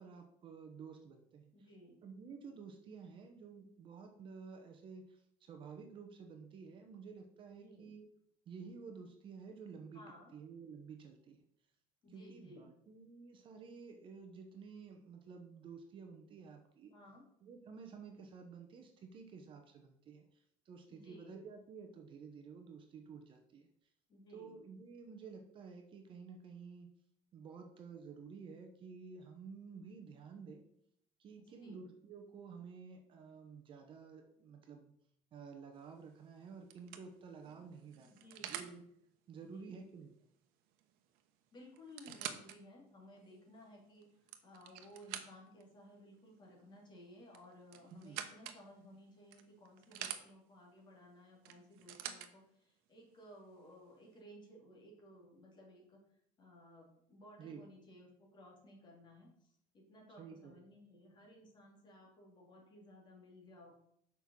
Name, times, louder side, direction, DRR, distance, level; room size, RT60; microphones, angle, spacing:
voice 1, 0.0-1.5 2.0-8.1 8.5-10.0 10.3-11.4 12.1-16.9 17.4-23.7 24.3-26.9 27.3-30.6 31.2-34.9 35.3-38.8 39.3-40.2 47.9-48.2 57.4-57.6 60.2-60.6, right 5 dB, 35° right, 4 dB, 0.9 m, -52 dB
voice 2, 1.5-2.0 7.5-7.9 9.9-10.3 12.0-12.7 16.9-17.3 20.9-21.4 24.1-24.6 31.4-31.8 38.0-38.8 39.4-39.8 41.5-44.2 44.4-56.0 56.4-63.7, left 1 dB, 30° left, -1 dB, 2.6 m, -58 dB
sound 1, 35.8-36.1 36.7-38.8 40.8-40.9 41.1-41.2 41.8-42.6 43.2-43.3 44.0-45.6 47.3-48.6 49.3-50.2 51.4-52.3 53.2-53.3, right 10 dB, 80° right, 1.0 m, -46 dB
7.0 x 5.4 x 6.1 m, 0.71 s
cardioid pair, 175°, 15 cm